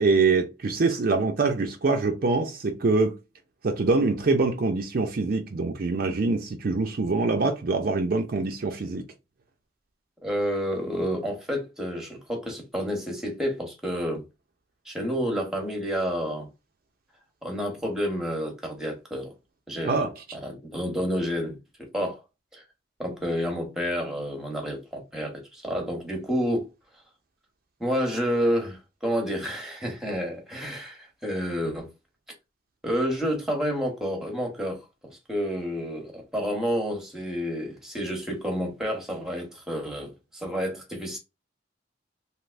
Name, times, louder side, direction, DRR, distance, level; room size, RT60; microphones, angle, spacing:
voice 1, 0.0-3.2 3.6-9.0 19.9-20.1, right 3 dB, 50° right, 0.5 m, -24 dB
voice 2, 10.2-14.2 14.8-16.5 17.4-19.3 19.7-20.1 20.3-22.2 22.5-22.6 23.0-26.7 27.8-31.9 32.8-41.2, equal, 5° right, 1.0 m, -29 dB
3.3 x 2.6 x 2.5 m
head